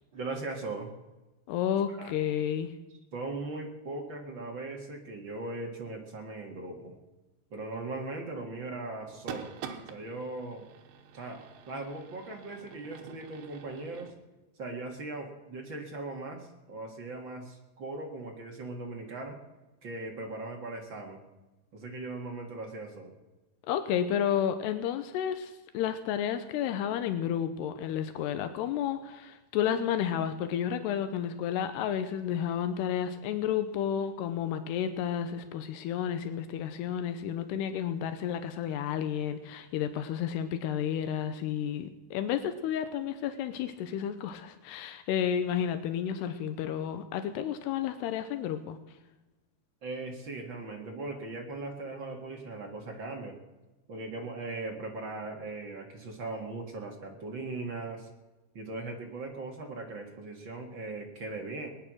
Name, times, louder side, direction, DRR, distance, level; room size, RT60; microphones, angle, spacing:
voice 1, 0.1-0.9 1.9-2.2 3.1-6.9 7.5-9.5 9.9-10.7 11.1-14.1 14.6-19.4 19.8-21.2 21.7-23.2 49.8-53.4 53.9-58.1 58.5-61.7, right 2 dB, 50° right, 1 dB, 1.5 m, -39 dB
voice 2, 1.5-2.7 23.7-48.8, left 9 dB, 85° left, 9 dB, 2.9 m, -31 dB
sound 1, 9.1-14.1, right 7 dB, 90° right, 3.4 m, -46 dB
20.0 x 9.9 x 6.1 m, 1.1 s
omnidirectional pair, 4.7 m